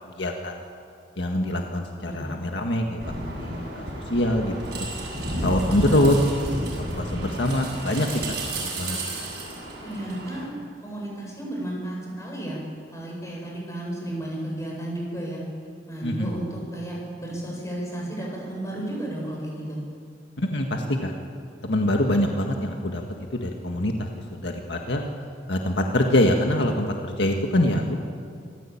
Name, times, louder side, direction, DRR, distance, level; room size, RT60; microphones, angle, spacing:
voice 1, 0.2-0.6 1.2-3.1 3.4-3.8 4.1-4.9 5.4-6.1 6.9-9.0 16.0-16.3 20.4-21.1 21.6-23.0 23.3-23.9 24.3-25.0 25.5-28.0, left 1 dB, 70° left, 2 dB, 1.8 m, -24 dB
voice 2, 2.0-2.4 5.7-6.1 9.8-10.5 10.8-12.6 12.9-15.4 15.9-19.8, right 1 dB, 15° left, -3 dB, 7.8 m, -33 dB
sound 1, 3.0-10.4, right 1 dB, 60° right, 7.9 m, -31 dB
26.5 x 14.5 x 8.7 m, 2.2 s
head